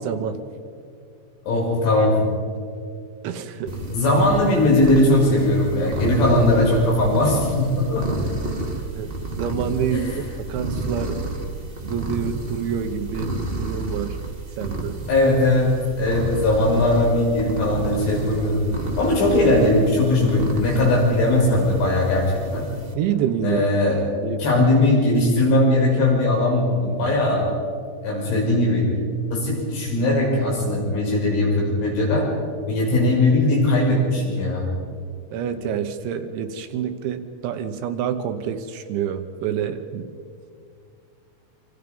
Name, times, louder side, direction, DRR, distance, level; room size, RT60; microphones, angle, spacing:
voice 1, 0.0-0.4 3.2-3.7 4.0-4.1 9.0-10.1 10.5-11.2 11.8-14.2 14.6-15.0 23.0-23.7 24.2-24.6 35.3-40.1, right 8 dB, 75° right, 8 dB, 3.2 m, -27 dB
voice 2, 1.5-2.2 3.9-8.1 9.9-10.2 15.1-15.7 16.0-18.6 19.0-22.2 22.5-22.6 23.4-24.0 24.4-27.4 28.0-28.9 29.3-32.3 32.7-34.7, left 1 dB, 75° left, -2 dB, 8.6 m, -19 dB
sound 1, 3.7-22.9, right 2 dB, 25° right, 1.2 m, -31 dB
28.0 x 25.5 x 5.4 m, 2.3 s
omnidirectional pair, 5.7 m